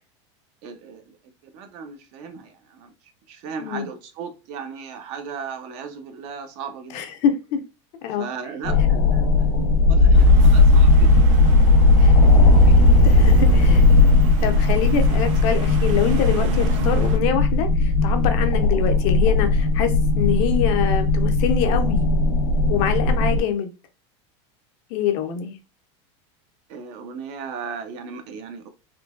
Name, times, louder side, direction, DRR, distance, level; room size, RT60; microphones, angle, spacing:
voice 1, 0.6-1.2 1.5-2.9 3.3-7.0 8.1-9.6 9.9-11.6 12.1-12.3 12.6-13.0 26.7-28.7, right 6 dB, 50° right, 0.6 m, -36 dB
voice 2, 6.9-7.6 8.0-8.3 11.9-12.1 13.0-13.9 14.4-22.1 22.7-23.7 24.9-25.6, left 8 dB, 45° left, 0.6 m, -25 dB
sound 1, 8.6-23.4, left 2 dB, 70° left, 1.0 m, -16 dB
sound 2, 10.1-17.2, right 6 dB, 85° right, 0.6 m, -36 dB
3.7 x 2.7 x 2.4 m
supercardioid pair, 160°, 15 cm